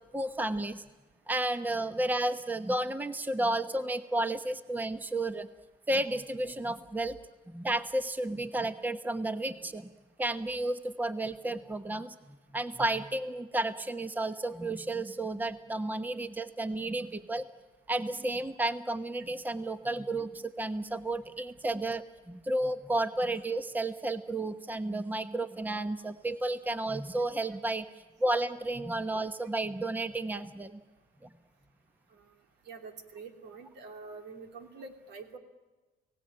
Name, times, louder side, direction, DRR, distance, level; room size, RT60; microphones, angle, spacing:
voice 1, 0.1-0.8 1.3-5.5 5.9-7.2 7.5-9.9 10.2-12.1 12.5-17.4 17.9-27.9 28.2-30.8 31.2-31.3, right 1 dB, 10° right, 10 dB, 1.1 m, -32 dB
voice 2, 32.6-35.4, right 4 dB, 80° right, 5 dB, 2.9 m, -46 dB
29.5 x 17.5 x 8.8 m, 1.2 s
cardioid pair, 110°, 17 cm